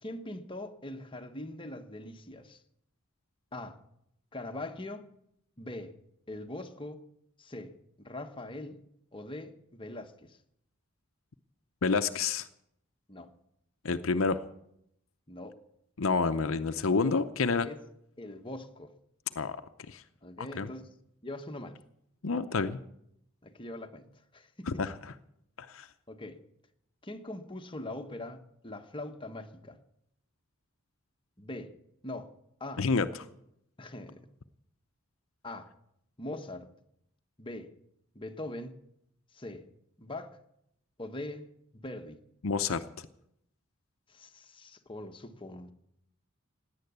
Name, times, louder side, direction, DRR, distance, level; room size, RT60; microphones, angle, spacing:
voice 1, 0.0-2.6 3.5-3.8 4.3-5.1 5.6-5.9 6.3-7.0 7.4-7.7 8.0-8.8 9.1-10.4 13.1-13.3 15.3-15.6 17.6-17.8 18.2-18.9 20.2-20.9 21.2-21.8 23.4-24.1 24.3-24.9 25.8-26.4 27.0-29.8 31.4-31.7 32.0-32.3 32.6-32.9 33.8-34.3 35.4-35.7 36.2-36.7 37.4-37.7 38.1-38.8 39.3-39.7 40.0-40.4 41.0-42.2 44.1-45.7, left 1 dB, 25° left, 1.1 m, -42 dB
voice 2, 11.8-12.5 13.8-14.4 16.0-17.7 19.4-19.6 19.9-20.0 20.4-20.7 22.2-22.8 24.7-24.9 25.6-25.9 32.8-33.1 42.4-42.8, left 4 dB, 70° left, 0.7 m, -28 dB
17.5 x 9.7 x 8.1 m
head